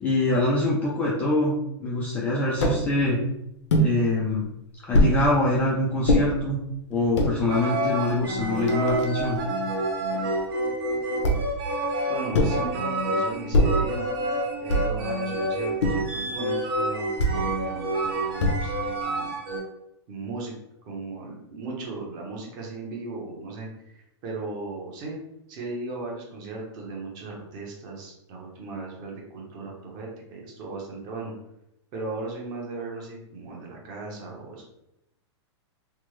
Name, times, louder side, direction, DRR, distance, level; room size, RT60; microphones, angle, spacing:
voice 1, 0.0-3.2 3.8-4.5 4.9-6.6 6.9-9.4, left 2 dB, 10° left, -6 dB, 0.3 m, -24 dB
sound 1, 2.6-2.8 3.7-3.9 4.9-5.2 6.1-6.2 7.0-7.3 8.1-8.2 8.4-9.4 11.2-11.6 12.3-12.7 13.5-13.9 14.7-15.0 15.8-16.1 17.2-17.4 18.4-18.8, equal, 80° left, 0.8 m, -22 dB
sound 2, 7.5-19.6, right 1 dB, 55° right, 0.9 m, -28 dB
voice 2, 12.1-14.1 14.6-19.4 20.1-20.5 20.8-25.2 25.5-31.3 31.9-34.6, right 3 dB, 30° right, -1 dB, 0.8 m, -37 dB
3.4 x 2.1 x 3.1 m, 0.83 s
supercardioid pair, 165°, 15 cm